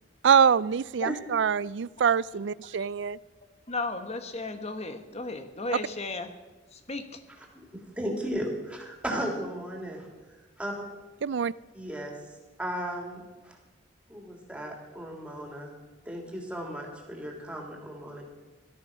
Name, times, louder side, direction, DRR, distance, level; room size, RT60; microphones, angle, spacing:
voice 1, 0.2-3.2 11.2-11.5, right 7 dB, 65° right, 21 dB, 0.4 m, -24 dB
voice 2, 3.7-6.3 6.7-7.2, left 3 dB, 35° left, 8 dB, 1.4 m, -35 dB
voice 3, 7.7-10.1 10.6-10.7 11.7-12.1 12.6-13.6 14.1-15.7 16.0-18.2, equal, 5° right, -1 dB, 3.2 m, -35 dB
17.0 x 12.5 x 6.1 m, 1.2 s
head